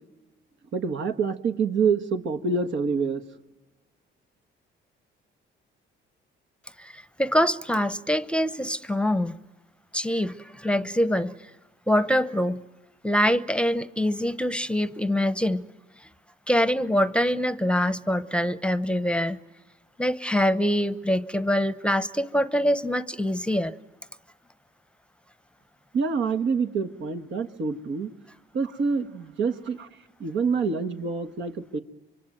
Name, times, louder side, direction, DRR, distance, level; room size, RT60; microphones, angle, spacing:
voice 1, 0.7-3.2 25.9-28.1 28.5-29.9 30.2-31.8, right 5 dB, 70° right, 8 dB, 1.7 m, -26 dB
voice 2, 6.8-9.4 9.9-11.3 11.9-12.6 13.0-15.6 16.5-19.4 20.0-23.7, equal, 5° left, 14 dB, 0.9 m, -24 dB
26.0 x 24.0 x 9.2 m, 1.1 s
cardioid pair, 90°, 20 cm